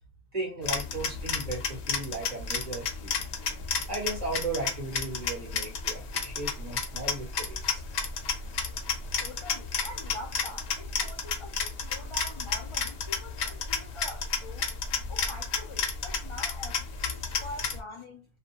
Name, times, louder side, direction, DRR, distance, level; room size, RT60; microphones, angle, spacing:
voice 1, 0.3-3.3 3.9-7.8 17.2-17.3, right 2 dB, 40° right, 1.2 m, -36 dB
sound 1, 0.6-17.8, left 5 dB, 90° left, 0.9 m, -32 dB
voice 2, 9.2-14.7 15.1-18.3, left 1 dB, 55° left, 0.3 m, -44 dB
2.3 x 2.2 x 2.8 m
omnidirectional pair, 1.1 m